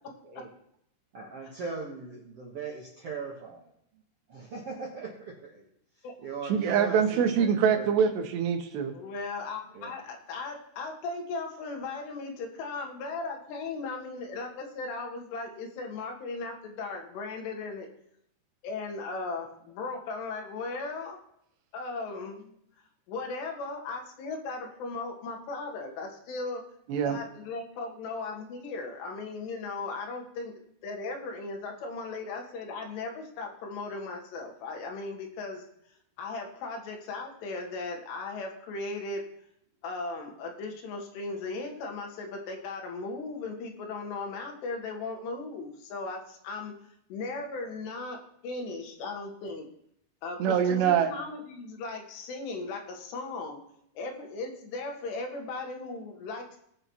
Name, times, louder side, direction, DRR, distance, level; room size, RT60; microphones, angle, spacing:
voice 1, 1.1-3.7 4.3-5.7 6.0-7.9 9.7-10.0, right 4 dB, 70° right, -2 dB, 1.4 m, -39 dB
voice 2, 6.4-8.9 26.9-27.2 50.4-51.1, right 7 dB, 85° right, 6 dB, 3.3 m, -24 dB
voice 3, 8.9-17.9 18.6-21.2 21.7-22.6 23.1-26.6 27.0-30.5 30.8-35.7 36.2-39.2 39.8-46.7 47.1-48.2 48.4-49.7 50.2-53.6 54.0-56.6, left 3 dB, 85° left, 2 dB, 3.5 m, -37 dB
19.5 x 6.8 x 3.0 m, 0.73 s
omnidirectional pair, 4.8 m